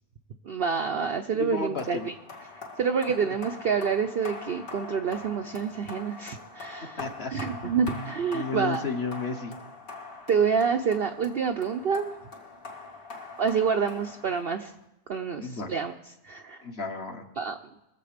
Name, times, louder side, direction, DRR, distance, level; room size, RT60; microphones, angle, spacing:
voice 1, 0.4-2.1 2.8-8.8 10.3-12.1 13.4-14.7 15.1-15.9 16.2-16.6 17.4-17.6, right 6 dB, 60° right, 6 dB, 0.6 m, -27 dB
voice 2, 1.3-2.1 7.0-7.3 7.6-8.1 8.3-9.6 15.4-15.7 16.6-17.2, left 4 dB, 45° left, 4 dB, 1.3 m, -33 dB
sound 1, 1.8-14.8, left 4 dB, 60° left, 2.6 m, -43 dB
22.0 x 7.6 x 5.0 m, 0.96 s
omnidirectional pair, 1.7 m